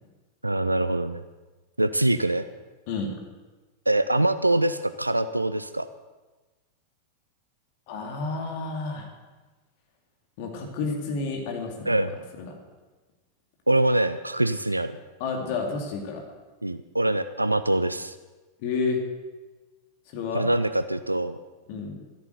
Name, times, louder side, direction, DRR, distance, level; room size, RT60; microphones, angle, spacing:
voice 1, 0.4-1.2 1.8-2.4 3.9-5.9 11.9-12.1 13.7-15.0 16.6-18.1 20.3-21.4, right 1 dB, 85° right, 12 dB, 0.4 m, -24 dB
voice 2, 7.9-9.1 10.4-12.0 15.2-16.2 18.6-19.0 20.1-20.5 21.7-22.0, left 4 dB, 50° left, 2 dB, 2.5 m, -30 dB
13.5 x 11.0 x 8.0 m, 1.2 s
figure-of-eight pair, 90°, 0 cm